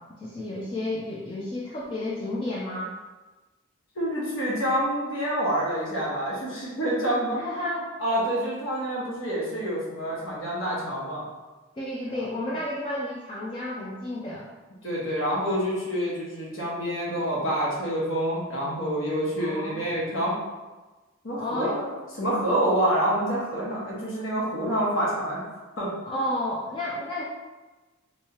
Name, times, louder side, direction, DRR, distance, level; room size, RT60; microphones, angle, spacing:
voice 1, 0.2-2.9 7.3-7.9 11.8-14.5 19.4-20.0 21.4-21.8 26.0-27.2, left 1 dB, 25° left, -5 dB, 0.4 m, -32 dB
voice 2, 3.9-7.4 8.0-11.2 14.8-20.3 21.2-21.9 22.2-26.2, right 1 dB, 70° left, -6 dB, 1.3 m, -27 dB
3.5 x 3.2 x 2.8 m, 1.2 s
head